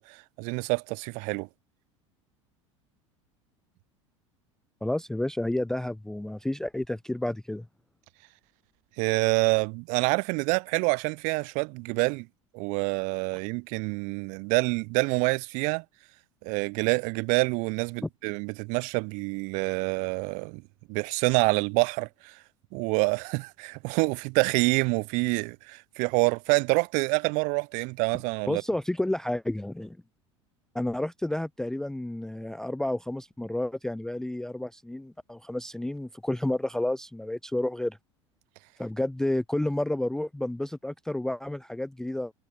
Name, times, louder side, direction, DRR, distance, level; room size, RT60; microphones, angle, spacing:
voice 1, 0.0-1.5 9.0-12.3 12.5-15.8 16.4-20.6 20.9-22.3 22.7-28.6, right 32 dB, 50° right, 0.7 m, -27 dB
voice 2, 4.8-7.7 18.0-18.1 28.5-30.0 30.7-38.0 38.8-42.3, left 1 dB, 5° left, 0.4 m, -30 dB
figure-of-eight pair, 75°, 16 cm